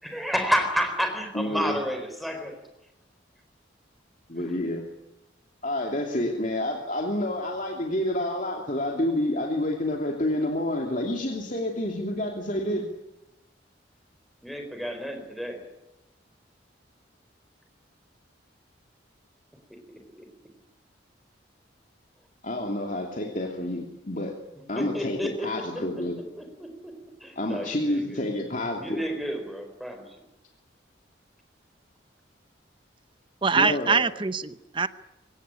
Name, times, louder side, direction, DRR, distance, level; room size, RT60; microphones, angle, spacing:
voice 1, 0.0-2.5 14.4-15.6 19.9-20.2 24.8-25.5 26.4-26.9 27.2-28.2 28.8-30.0, equal, ahead, 5 dB, 4.1 m, -30 dB
voice 2, 1.3-1.8 4.3-4.8 5.6-12.9 22.4-24.4 24.7-26.2 27.4-29.0 33.6-34.0, left 1 dB, 40° left, 1 dB, 2.8 m, -29 dB
voice 3, 33.4-34.9, right 4 dB, 25° right, 13 dB, 0.8 m, -24 dB
24.0 x 18.0 x 9.9 m, 0.93 s
head